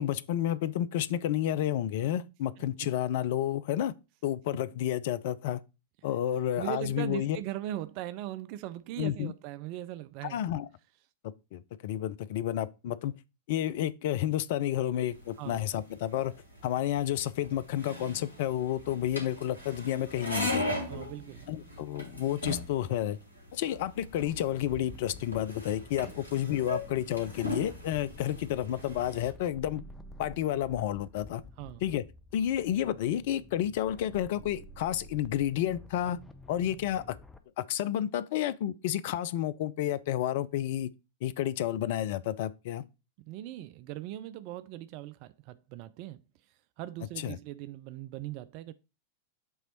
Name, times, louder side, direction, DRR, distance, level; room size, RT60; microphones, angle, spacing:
voice 1, 0.0-3.9 4.2-5.6 6.0-7.4 9.0-9.3 10.3-10.7 11.5-13.1 13.5-16.3 16.6-20.8 21.5-23.2 23.5-29.8 30.2-31.4 31.8-32.0 32.3-36.2 36.5-37.2 37.6-40.9 41.2-42.8 47.2-47.4, left 11 dB, 50° left, 0.4 m, -30 dB
voice 2, 2.6-2.9 4.5-4.6 6.6-10.4 12.9-13.0 15.4-15.6 20.9-21.5 31.6-31.8 43.2-48.7, right 14 dB, 45° right, 0.4 m, -40 dB
sound 1, 15.1-29.3, left 1 dB, 80° left, 2.2 m, -39 dB
sound 2, 24.1-37.4, left 1 dB, 10° left, 0.7 m, -50 dB
7.9 x 3.0 x 4.3 m
figure-of-eight pair, 90°, 0 cm